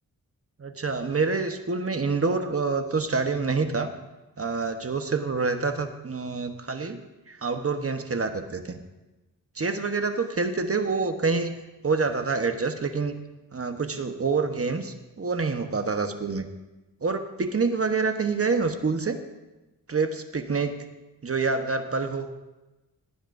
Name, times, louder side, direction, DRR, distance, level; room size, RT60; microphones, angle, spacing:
voice 1, 0.6-3.9 4.4-7.0 7.3-8.8 9.6-11.6 11.8-13.1 13.5-16.5 17.0-19.2 19.9-20.8 21.2-22.3, right 4 dB, 40° right, 7 dB, 1.1 m, -27 dB
18.0 x 15.0 x 2.6 m, 1.1 s
cardioid pair, 75°, 36 cm